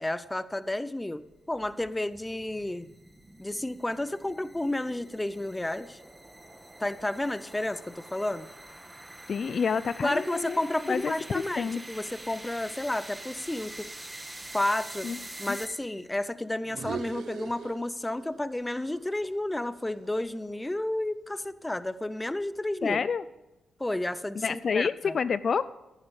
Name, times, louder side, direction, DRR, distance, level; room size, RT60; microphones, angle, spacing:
voice 1, 0.0-2.9 3.4-6.0 6.8-8.5 10.0-13.9 14.5-15.1 15.4-23.0 23.8-25.1, left 1 dB, 15° left, 15 dB, 0.6 m, -31 dB
sound 1, 1.3-16.1, right 1 dB, 15° right, 1.5 m, -46 dB
voice 2, 9.3-10.6 10.9-11.1 11.6-11.8 15.0-15.2 15.5-15.6 22.8-23.2 24.4-25.6, left 6 dB, 55° left, 16 dB, 0.3 m, -28 dB
sound 2, 16.6-18.4 18.7-20.9, right 7 dB, 75° right, 0.5 m, -42 dB
11.0 x 9.8 x 5.4 m, 1.0 s
cardioid pair, 65°, 0 cm